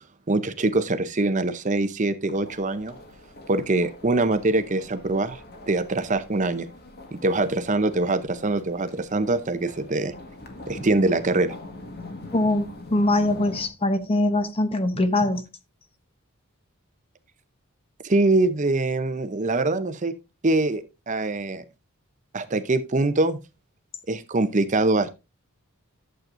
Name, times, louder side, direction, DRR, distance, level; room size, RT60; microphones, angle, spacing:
voice 1, 0.3-2.9 3.5-5.4 5.7-6.7 7.1-10.1 10.7-11.5 18.0-20.1 20.4-21.6 22.3-23.4 24.1-25.1, right 2 dB, 35° right, 0.7 m, -23 dB
sound 1, 2.3-13.7, left 2 dB, 45° left, 1.6 m, -43 dB
voice 2, 12.3-15.4, left 1 dB, 25° left, 0.9 m, -23 dB
11.5 x 7.6 x 2.6 m
head